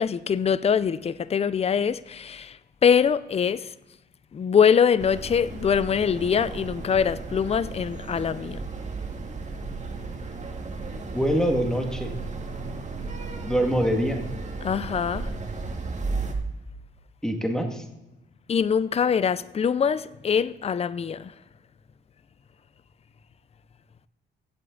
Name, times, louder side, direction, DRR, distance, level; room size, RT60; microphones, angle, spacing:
voice 1, 0.0-2.6 2.8-3.7 4.3-8.6 14.6-15.3 18.5-21.3, left 7 dB, 30° left, 0.5 m, -23 dB
sound 1, 5.0-16.3, right 3 dB, 35° right, 1.9 m, -34 dB
voice 2, 11.1-12.1 13.5-14.2 17.2-17.7, equal, 5° left, 2.0 m, -24 dB
15.5 x 7.9 x 3.9 m
cardioid pair, 90°, 20 cm